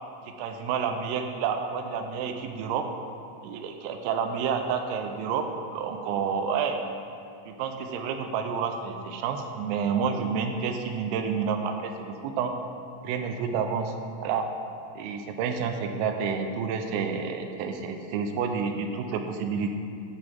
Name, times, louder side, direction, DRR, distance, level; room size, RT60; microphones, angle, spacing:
voice 1, 0.4-2.9 3.4-6.8 7.5-12.6 13.0-13.9 14.2-14.5 15.0-19.7, right 6 dB, 85° right, 5 dB, 3.4 m, -29 dB
10.5 x 4.1 x 7.5 m, 2.5 s
omnidirectional pair, 5.8 m